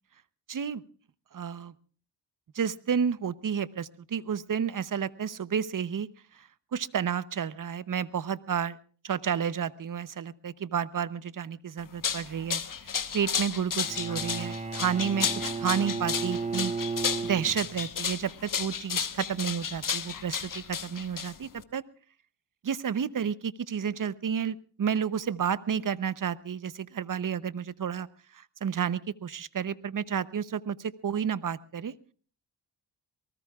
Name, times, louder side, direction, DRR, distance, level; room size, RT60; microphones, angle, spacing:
voice 1, 0.5-0.8 1.3-1.7 2.5-6.1 6.3-8.8 9.0-15.3 15.6-16.7 17.2-21.8 22.6-28.1 28.3-31.9, right 7 dB, 50° right, 17 dB, 0.8 m, -31 dB
sound 1, 11.8-21.6, left 7 dB, 50° left, 1.2 m, -33 dB
Bowed string instrument, 13.8-17.9, right 4 dB, 15° right, 0.7 m, -34 dB
24.0 x 19.0 x 2.4 m, 0.42 s
cardioid pair, 55°, 42 cm